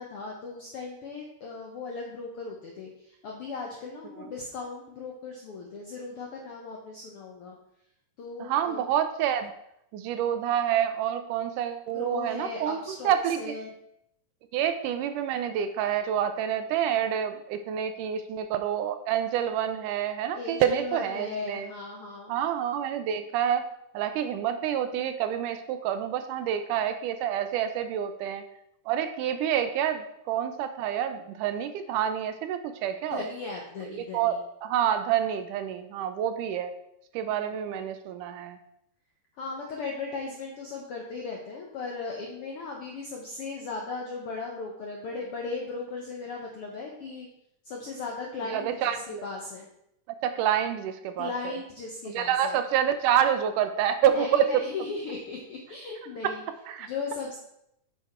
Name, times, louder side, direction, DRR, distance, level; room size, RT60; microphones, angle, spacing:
voice 1, 0.0-7.5 8.2-8.9 11.9-13.7 20.3-22.3 33.1-34.4 37.4-37.5 39.4-47.3 47.6-49.7 51.2-52.6 54.1-56.4 56.8-57.4, left 4 dB, 75° left, 0 dB, 1.3 m, -37 dB
voice 2, 8.4-9.5 9.9-13.5 14.5-21.7 22.3-23.7 23.9-28.5 28.9-33.2 33.9-34.4 34.6-36.7 37.1-38.6 48.5-49.3 50.2-51.6 52.1-54.5 56.2-56.4 56.7-56.9, right 9 dB, 80° right, 9 dB, 2.0 m, -28 dB
8.3 x 6.0 x 4.3 m, 0.79 s
omnidirectional pair, 3.8 m